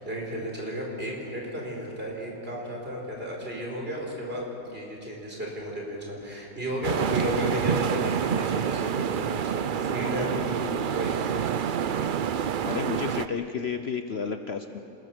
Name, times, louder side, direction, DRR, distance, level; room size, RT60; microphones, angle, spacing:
voice 1, 0.0-11.4, equal, 40° right, -2 dB, 5.1 m, -33 dB
sound 1, 6.8-13.3, right 8 dB, 60° right, 0.5 m, -27 dB
voice 2, 12.6-14.8, left 6 dB, 50° left, 7 dB, 1.0 m, -31 dB
27.5 x 21.0 x 6.2 m, 2.8 s
omnidirectional pair, 1.5 m